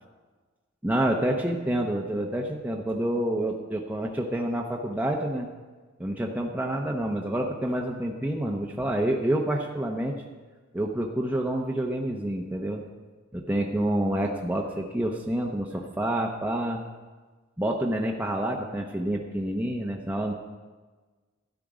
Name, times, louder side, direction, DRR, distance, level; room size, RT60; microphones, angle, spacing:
voice 1, 0.8-5.5 6.0-10.2 10.7-12.8 13.3-16.8 17.6-20.3, right 1 dB, 10° right, 0 dB, 0.7 m, -28 dB
12.5 x 11.0 x 5.0 m, 1.4 s
head